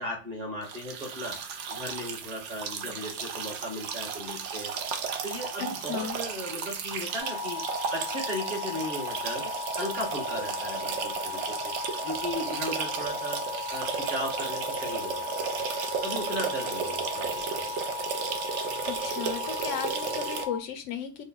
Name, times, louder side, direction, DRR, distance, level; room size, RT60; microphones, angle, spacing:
voice 1, 0.0-1.4 1.7-7.6 7.9-11.7 12.0-13.4 13.7-15.6 16.0-17.6, equal, 35° right, 0 dB, 1.1 m, -36 dB
sound 1, 0.6-20.5, right 6 dB, 75° right, 0.9 m, -34 dB
voice 2, 5.6-6.2 18.9-21.2, left 8 dB, 85° left, 8 dB, 0.9 m, -35 dB
sound 2, 7.2-20.6, left 6 dB, 5° right, 0.4 m, -37 dB
3.2 x 2.1 x 3.7 m, 0.33 s
omnidirectional pair, 1.3 m